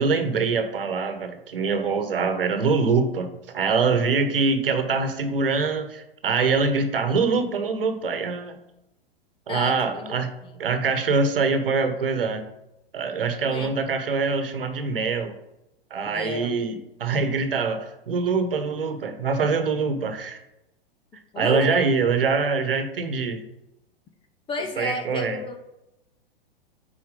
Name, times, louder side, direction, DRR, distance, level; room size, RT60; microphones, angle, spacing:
voice 1, 0.0-8.6 9.5-10.3 10.6-12.4 12.9-15.3 15.9-20.4 21.4-23.4 24.8-25.4, right 4 dB, 65° right, 8 dB, 1.2 m, -24 dB
voice 2, 9.5-10.6 13.5-13.7 16.0-16.6 21.3-21.8 24.5-25.6, left 3 dB, 15° left, 6 dB, 0.7 m, -32 dB
8.7 x 4.6 x 3.7 m, 0.91 s
figure-of-eight pair, 105°, 30 cm